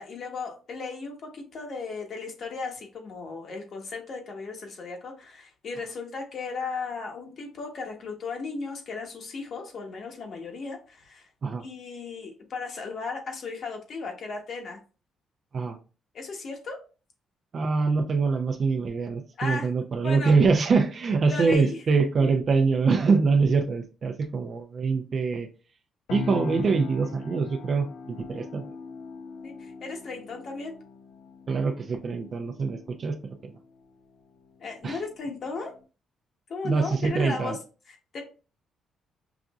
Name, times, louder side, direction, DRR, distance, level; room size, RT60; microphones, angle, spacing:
voice 1, 0.0-11.3 11.6-14.8 16.1-16.8 19.4-19.7 20.0-20.4 21.3-21.8 29.4-30.7 34.6-35.7 36.5-37.6 37.9-38.2, left 4 dB, 60° left, 2 dB, 1.2 m, -36 dB
voice 2, 17.5-25.5 26.1-28.7 31.5-33.1 34.8-35.0 36.6-37.5, right 4 dB, 50° right, 5 dB, 0.6 m, -24 dB
sound 1, 26.1-35.8, left 5 dB, 90° left, 0.7 m, -41 dB
5.8 x 2.6 x 2.4 m, 0.35 s
cardioid pair, 90°, 0 cm